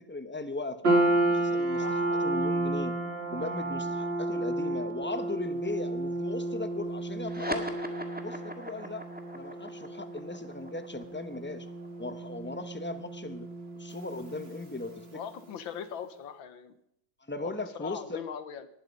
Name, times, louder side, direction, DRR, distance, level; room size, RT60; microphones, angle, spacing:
voice 1, 0.1-0.9 1.3-2.9 3.3-7.8 8.2-9.0 9.3-11.7 12.0-13.5 13.7-15.2 17.3-18.2, left 2 dB, 15° left, 10 dB, 0.4 m, -38 dB
sound 1, 0.8-15.3, right 2 dB, 35° right, 1.7 m, -32 dB
sound 2, 7.2-14.0, equal, 5° right, 1.5 m, -42 dB
voice 2, 15.1-16.7 17.4-18.7, left 8 dB, 80° left, 12 dB, 1.7 m, -40 dB
19.0 x 11.5 x 5.4 m, 0.76 s
omnidirectional pair, 2.1 m